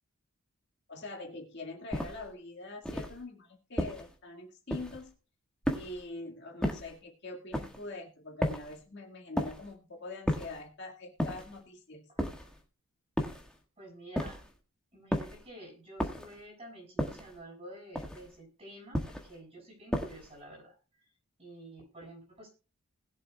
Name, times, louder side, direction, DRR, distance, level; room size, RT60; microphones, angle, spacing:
voice 1, 0.9-5.1 5.7-12.0, left 2 dB, 50° left, 1 dB, 2.0 m, -44 dB
sound 1, 1.9-2.3 2.8-3.2 3.8-4.2 4.7-5.1 5.6-6.1 6.6-7.0 7.5-7.9 8.4-8.8 9.4-9.7 10.3-10.7 11.2-11.6 12.2-12.6 13.2-13.6 14.2-14.6 15.1-15.5 16.0-16.4 17.0-17.4 18.0-18.4 18.9-19.4 19.9-20.3, equal, 5° left, 1.4 m, -34 dB
voice 2, 13.8-14.4 14.9-20.8 21.4-22.5, right 1 dB, 25° right, -1 dB, 6.9 m, -50 dB
20.5 x 7.6 x 2.3 m, 0.34 s
head